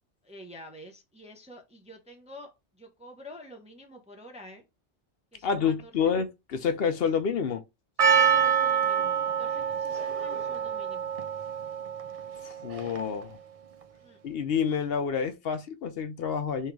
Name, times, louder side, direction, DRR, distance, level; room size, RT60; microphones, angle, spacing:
voice 1, 0.2-4.6 5.3-5.9 8.0-11.1 14.0-14.2, left 1 dB, 5° right, 0.8 m, -48 dB
voice 2, 5.4-7.6 12.4-13.4 14.2-16.7, left 6 dB, 60° left, 0.8 m, -28 dB
Percussion, 8.0-13.2, right 7 dB, 50° right, 0.4 m, -26 dB
3.7 x 3.1 x 4.6 m
omnidirectional pair, 1.2 m